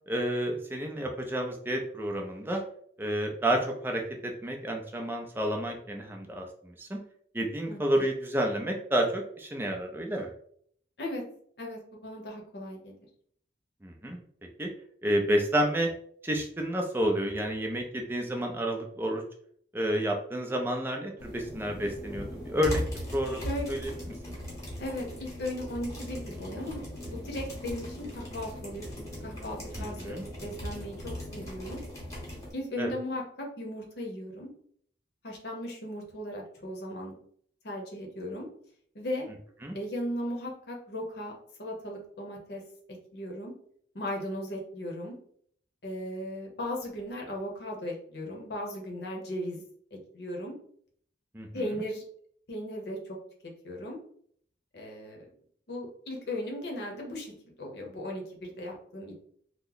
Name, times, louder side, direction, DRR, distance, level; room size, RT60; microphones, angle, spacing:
voice 1, 0.1-2.6 3.0-7.0 7.3-10.3 13.8-14.2 14.6-14.7 15.0-15.9 16.2-19.2 19.7-22.8 23.1-23.9 29.8-30.2 32.8-32.9 39.6-39.8 51.3-51.5, right 1 dB, 10° right, 1 dB, 0.4 m, -30 dB
voice 2, 7.7-8.1 11.0-11.2 11.6-13.0 23.2-23.7 24.8-26.8 27.1-28.8 29.2-31.8 32.5-34.5 35.2-37.1 37.6-38.5 38.9-39.3 39.7-41.3 41.6-42.6 43.1-43.5 43.9-45.1 45.8-49.6 49.9-50.5 51.5-52.0 52.5-53.2 53.4-54.0 54.7-55.3 55.7-59.1, left 1 dB, 60° left, -1 dB, 0.8 m, -37 dB
sound 1, 21.2-32.5, equal, 20° left, 1.0 m, -39 dB
2.9 x 2.1 x 3.8 m, 0.62 s
head